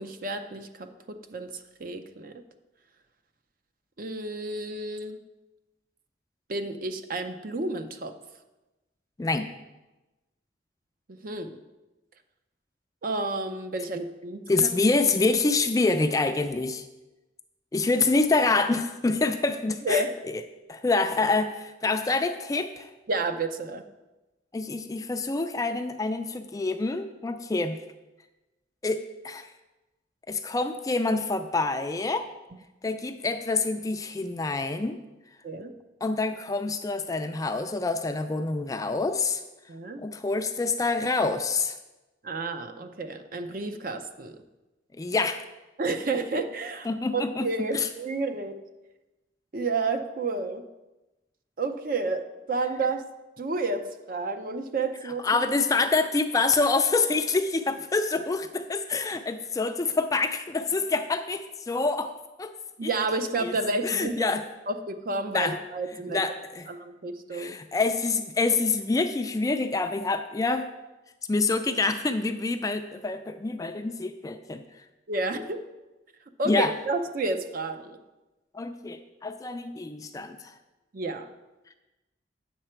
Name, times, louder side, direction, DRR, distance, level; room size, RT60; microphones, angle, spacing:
voice 1, 0.0-2.4 4.0-5.2 6.5-8.1 11.1-11.6 13.0-14.7 19.8-20.2 23.1-23.8 35.4-35.7 39.7-40.0 42.2-44.4 45.8-48.5 49.5-50.6 51.6-53.1 53.4-55.3 62.8-64.3 64.7-66.2 66.7-67.6 75.1-75.6 76.4-78.0 80.9-81.3, right 3 dB, 45° right, 7 dB, 0.6 m, -31 dB
voice 2, 9.2-9.5 14.5-16.8 17.7-20.0 20.3-20.4 20.7-22.9 24.5-27.8 28.8-29.5 30.3-32.3 32.8-35.0 36.0-39.4 40.0-41.8 45.0-45.4 46.9-47.5 47.7-47.9 55.2-62.1 62.4-62.5 62.8-62.9 63.4-63.5 63.8-64.4 65.3-65.6 66.1-66.7 67.3-70.7 71.3-74.6 76.5-76.7 78.5-80.4, left 3 dB, 20° left, 8 dB, 0.3 m, -26 dB
8.8 x 6.6 x 4.4 m, 1.1 s
head